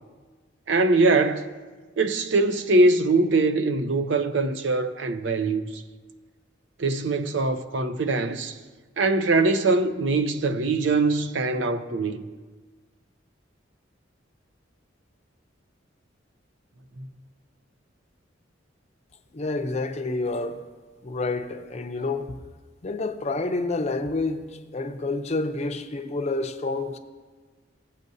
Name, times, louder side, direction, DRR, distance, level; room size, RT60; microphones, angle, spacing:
voice 1, 0.7-1.5 2.0-5.8 6.8-8.6 9.0-12.2 17.0-17.1, right 3 dB, 70° right, 0.6 m, -22 dB
voice 2, 19.3-20.6 21.0-22.3 22.8-27.0, left 3 dB, 35° left, 0.6 m, -28 dB
17.0 x 8.3 x 2.7 m
head